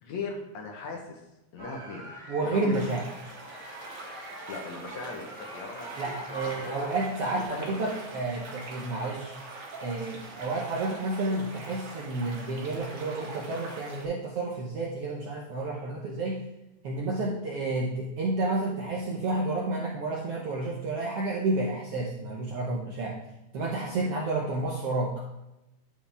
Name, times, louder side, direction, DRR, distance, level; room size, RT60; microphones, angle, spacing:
voice 1, 0.0-1.2 1.5-2.1 2.5-3.0 4.5-6.0 6.3-6.9 7.3-7.9 23.9-24.1, left 3 dB, 70° left, 1 dB, 2.1 m, -38 dB
sound 1, 1.6-7.4, right 1 dB, 20° right, 1.6 m, -45 dB
voice 2, 2.3-3.1 6.0-9.3 9.8-16.4 16.8-23.2 23.5-25.1, right 2 dB, 70° right, -2 dB, 1.4 m, -30 dB
sound 2, 2.7-14.1, right 2 dB, 55° right, 2.0 m, -43 dB
10.5 x 4.8 x 3.4 m, 0.96 s
omnidirectional pair, 3.7 m